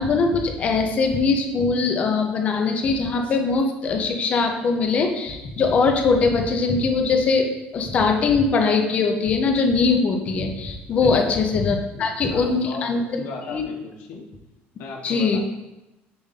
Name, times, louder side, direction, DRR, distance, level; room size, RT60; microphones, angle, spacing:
voice 1, 0.0-7.5 7.7-13.0 13.5-13.6 15.0-15.4, left 4 dB, 30° left, 3 dB, 0.7 m, -21 dB
voice 2, 11.0-11.4 11.9-12.9 13.2-14.3 14.8-15.4, left 4 dB, 75° left, -1 dB, 1.1 m, -36 dB
6.8 x 2.6 x 5.7 m, 0.98 s
cardioid pair, 170°, 4 cm